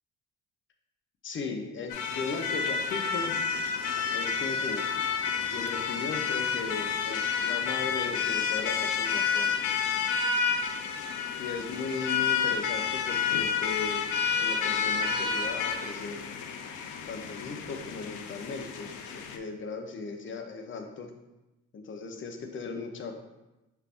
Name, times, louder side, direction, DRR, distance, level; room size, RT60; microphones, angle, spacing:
voice 1, 1.2-3.3 4.1-4.9 5.5-9.6 11.4-14.1 14.4-16.2 17.1-21.1 21.7-23.1, left 4 dB, 40° left, 3 dB, 0.7 m, -37 dB
sound 1, 1.9-19.4, left 6 dB, 85° left, 0.5 m, -30 dB
5.5 x 2.5 x 3.4 m, 1.0 s
cardioid pair, 90°, 30 cm